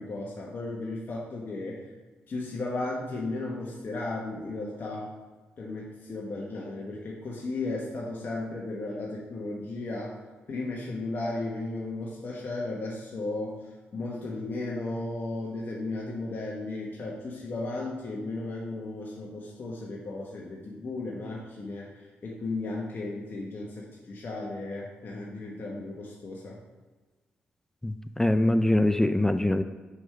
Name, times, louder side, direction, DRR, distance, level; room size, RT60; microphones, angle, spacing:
voice 1, 0.0-1.8 2.3-5.1 5.6-10.2 10.5-13.6 13.9-26.6, left 2 dB, 50° left, -3 dB, 1.2 m, -35 dB
voice 2, 27.8-29.6, left 1 dB, 10° left, 10 dB, 0.3 m, -23 dB
6.3 x 3.6 x 5.7 m, 1.3 s
cardioid pair, 70°, 4 cm